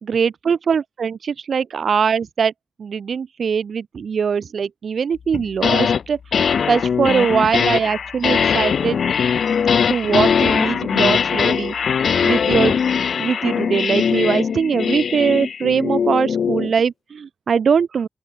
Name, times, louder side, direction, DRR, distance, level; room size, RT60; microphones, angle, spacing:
voice 1, 0.0-2.5 2.8-6.2 6.7-9.0 9.9-11.7 12.2-12.8 13.2-18.1, right 6 dB, 70° right, 1.1 m, -21 dB
sound 1, 5.3-6.0 6.3-16.7, left 7 dB, 85° left, 3.2 m, -20 dB
open air
wide cardioid pair, 170°, 0 cm